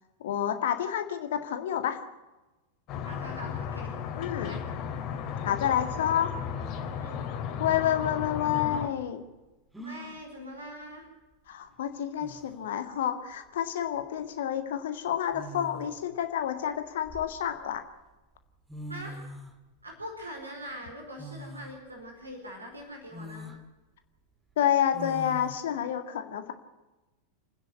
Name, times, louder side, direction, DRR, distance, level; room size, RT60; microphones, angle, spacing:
voice 1, 0.2-2.1 4.2-4.6 5.4-6.4 7.6-9.2 11.5-17.8 24.6-26.5, left 10 dB, 60° left, 8 dB, 1.9 m, -29 dB
sound 1, 2.9-8.9, left 7 dB, 40° left, 2.9 m, -35 dB
voice 2, 3.0-3.9 4.4-4.6 5.6-5.8 7.0-7.3 9.8-11.1 18.9-19.2 19.8-23.5, equal, 80° right, 1 dB, 4.8 m, -42 dB
sound 2, 9.7-10.2 11.7-11.8 12.2-12.7 14.0-14.2 15.3-16.1 16.7-17.8 18.4-18.5 18.7-19.6 21.2-21.8 22.3-22.4 23.1-23.6 24.9-25.6, left 1 dB, 5° right, 2.2 m, -42 dB
29.0 x 10.0 x 9.4 m, 1.1 s
figure-of-eight pair, 90°, 0 cm